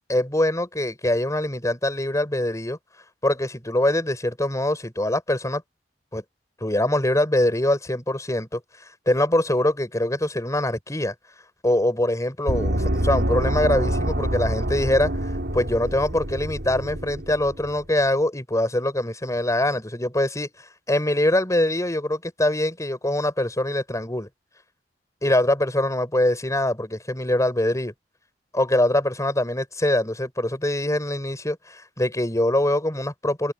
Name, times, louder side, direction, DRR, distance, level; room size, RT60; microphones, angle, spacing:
voice 1, 0.1-2.8 3.2-5.6 6.1-6.2 6.6-8.6 9.1-11.1 11.6-15.1 15.5-20.5 20.9-24.3 25.2-27.9 28.5-33.5, left 1 dB, 20° left, 5.0 m, -23 dB
Gong, 12.5-17.7, right 1 dB, 75° right, 4.2 m, -26 dB
open air
head